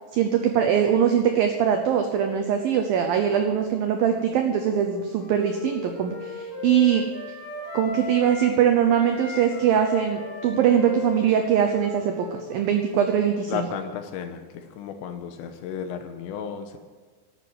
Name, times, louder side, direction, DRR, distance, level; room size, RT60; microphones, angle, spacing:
voice 1, 0.1-7.0 7.7-13.7, right 8 dB, 85° right, 5 dB, 2.0 m, -22 dB
Wind instrument woodwind instrument, 4.2-8.6 8.9-13.4, left 4 dB, 25° left, 1.7 m, -37 dB
voice 2, 13.5-16.8, left 7 dB, 80° left, 7 dB, 3.1 m, -33 dB
12.0 x 8.2 x 9.3 m, 1.4 s
omnidirectional pair, 5.4 m